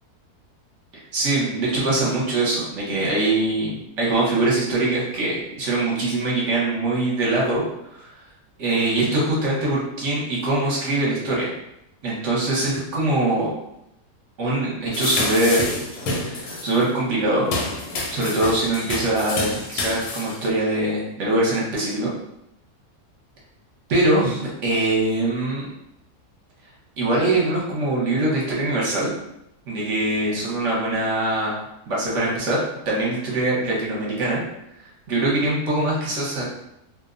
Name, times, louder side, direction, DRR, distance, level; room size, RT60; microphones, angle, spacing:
voice 1, 1.1-7.6 7.9-8.1 8.6-11.5 12.0-13.5 14.4-15.7 16.3-17.5 18.1-22.1 23.9-25.7 27.0-29.1 29.7-34.4 35.1-36.4, right 2 dB, 55° right, -4 dB, 1.0 m, -23 dB
sound 1, 14.9-16.8 17.4-20.5, left 2 dB, 80° left, 1.1 m, -28 dB
2.8 x 2.0 x 2.4 m, 0.84 s
omnidirectional pair, 1.7 m